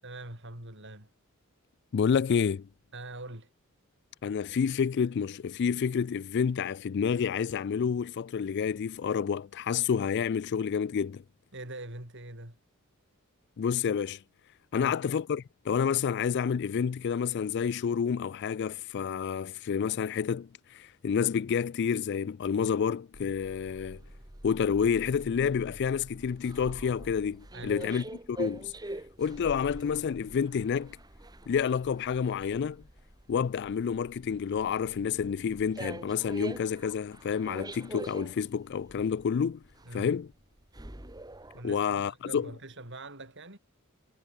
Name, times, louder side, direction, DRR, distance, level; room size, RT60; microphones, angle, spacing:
voice 1, 0.0-1.1 2.9-3.5 11.5-12.6 14.8-15.0 27.5-27.9 39.9-40.1 41.5-43.6, right 2 dB, 55° right, 7.5 m, -43 dB
voice 2, 1.9-2.7 4.2-11.2 13.6-14.2 14.7-24.0 24.4-28.7 29.2-31.0 31.5-32.8 33.3-39.6 39.9-40.3 41.6-42.5, left 7 dB, 50° left, 0.3 m, -29 dB
sound 1, 23.1-41.6, right 1 dB, 20° right, 2.0 m, -45 dB
head